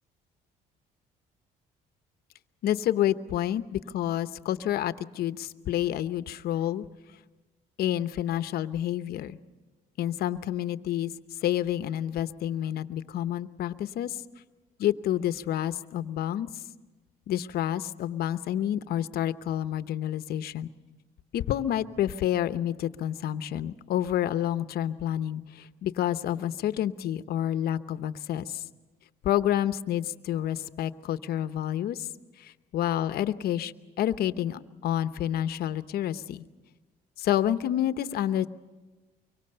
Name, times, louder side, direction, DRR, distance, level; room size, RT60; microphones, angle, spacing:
voice 1, 2.6-6.9 7.8-9.4 10.0-11.1 11.4-14.2 14.8-16.5 17.3-20.7 21.3-28.6 29.2-32.1 32.4-36.4 37.2-38.5, left 11 dB, 65° left, 12 dB, 0.9 m, -29 dB
24.0 x 24.0 x 6.8 m, 1.2 s
cardioid pair, 110°, 17 cm